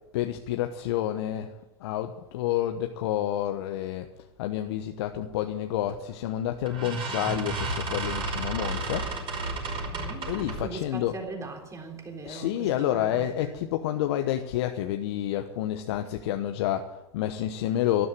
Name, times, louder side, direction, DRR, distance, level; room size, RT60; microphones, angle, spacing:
voice 1, 0.1-4.1 4.4-9.1 10.3-11.2 12.2-18.1, left 12 dB, 65° left, 1.1 m, -29 dB
sound 1, 5.9-6.2 6.7-10.7, right 2 dB, 35° right, 5.4 m, -32 dB
voice 2, 9.7-13.6, right 4 dB, 20° right, 3.9 m, -40 dB
12.5 x 11.0 x 7.9 m
hypercardioid pair, 100°, 15 cm